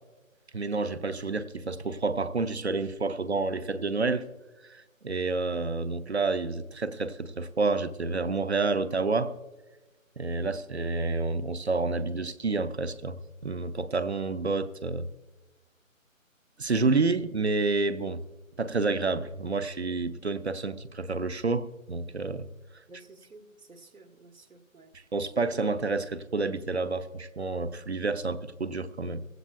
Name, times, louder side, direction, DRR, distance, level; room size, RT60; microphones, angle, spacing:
voice 1, 0.5-4.2 4.6-9.3 10.2-15.1 16.6-18.2 18.6-22.5 24.9-29.2, right 3 dB, 50° right, 0.7 m, -29 dB
voice 2, 22.9-24.9, right 3 dB, 85° right, 1.8 m, -51 dB
17.5 x 16.0 x 2.6 m
figure-of-eight pair, 175°, 41 cm